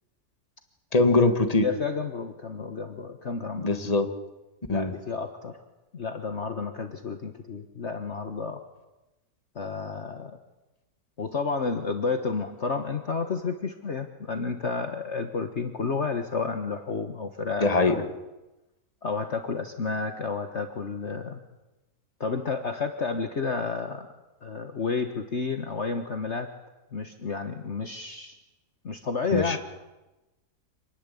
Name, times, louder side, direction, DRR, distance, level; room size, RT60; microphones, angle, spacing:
voice 1, 0.9-1.7 3.6-4.1 4.7-5.0 17.6-18.0 29.3-29.6, left 3 dB, 25° left, 7 dB, 2.0 m, -22 dB
voice 2, 1.6-3.7 4.7-5.6 5.9-8.6 9.5-10.4 11.2-18.1 19.0-21.4 22.2-24.1 24.4-26.5 26.9-28.3 28.8-29.6, left 4 dB, 45° left, 6 dB, 1.6 m, -31 dB
27.0 x 20.0 x 8.6 m, 1.0 s
omnidirectional pair, 1.7 m